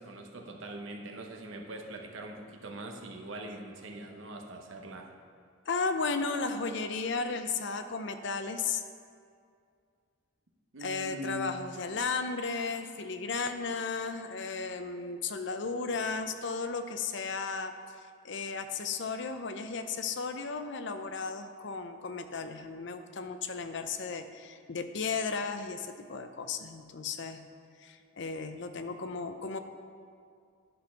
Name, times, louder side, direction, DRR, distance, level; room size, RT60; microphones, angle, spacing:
voice 1, 0.0-5.1 10.7-11.6, right 1 dB, 70° right, 2 dB, 0.9 m, -42 dB
voice 2, 5.7-8.8 10.8-17.7 18.2-27.4 27.8-29.6, left 4 dB, 60° left, 8 dB, 0.5 m, -34 dB
11.0 x 4.3 x 5.7 m, 2.3 s
head